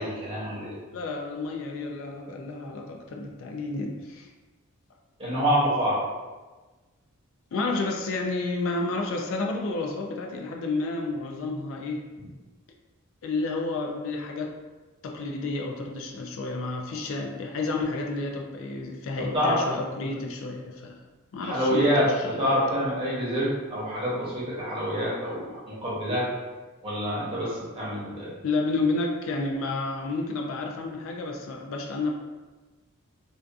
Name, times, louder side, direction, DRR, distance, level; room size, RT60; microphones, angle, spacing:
voice 1, 0.0-0.8 5.2-6.0 19.1-19.6 20.0-20.1 21.4-26.3 26.8-28.3, equal, 25° right, -8 dB, 0.9 m, -27 dB
voice 2, 0.9-4.3 7.5-12.0 13.2-14.6 15.0-21.0 21.3-22.3 28.4-32.1, left 3 dB, 65° left, 1 dB, 0.3 m, -30 dB
2.5 x 2.3 x 2.3 m, 1.3 s
head